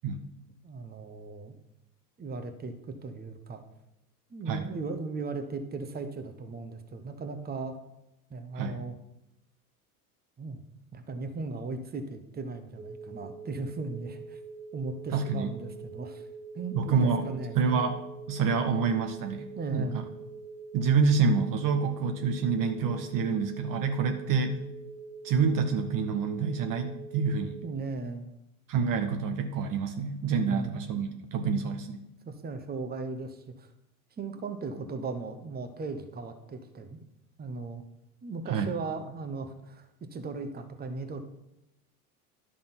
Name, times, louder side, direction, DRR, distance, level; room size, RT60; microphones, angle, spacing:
voice 1, 0.6-1.5 2.2-3.6 4.3-7.8 8.3-9.0 10.4-10.6 10.9-14.4 14.7-16.3 16.5-17.7 19.6-20.1 27.6-28.3 30.5-30.8 32.2-33.7 34.2-37.0 37.4-37.8 38.2-41.2, right 3 dB, 20° right, 7 dB, 1.0 m, -37 dB
sound 1, 12.8-27.7, right 4 dB, 90° right, 1.1 m, -44 dB
voice 2, 15.1-15.5 16.7-17.3 17.5-18.0 18.3-19.5 19.7-19.9 20.7-24.6 25.2-27.6 28.7-32.0 38.5-38.7, right 5 dB, 45° right, 6 dB, 0.9 m, -27 dB
11.0 x 3.7 x 5.7 m, 0.87 s
hypercardioid pair, 80°, 45 cm